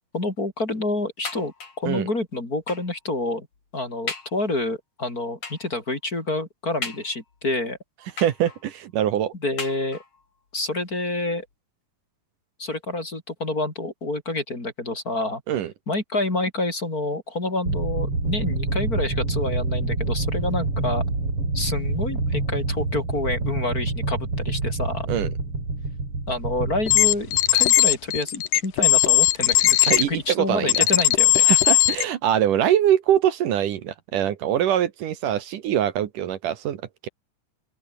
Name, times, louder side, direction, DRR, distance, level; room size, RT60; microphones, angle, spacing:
voice 1, 0.1-3.5 3.7-7.8 9.4-10.0 10.5-11.5 12.6-15.4 15.9-21.0 21.5-25.1 26.3-31.5, left 2 dB, 25° left, 4.6 m, -28 dB
sound 1, 1.2-1.9 2.7-3.0 3.5-3.6 4.1-4.4 5.4-5.8 6.8-7.4 8.2-8.8 9.6-10.3 11.1-11.2 11.5-11.6, left 4 dB, 45° left, 4.9 m, -36 dB
voice 2, 8.2-9.3 15.5-15.7 25.1-25.3 29.9-30.9 31.5-37.1, right 10 dB, 70° right, 2.9 m, -23 dB
sound 2, 17.7-27.7, right 2 dB, 40° right, 8.4 m, -27 dB
sound 3, 26.9-30.0 30.7-32.0, left 13 dB, 75° left, 2.7 m, -18 dB
open air
omnidirectional pair, 3.9 m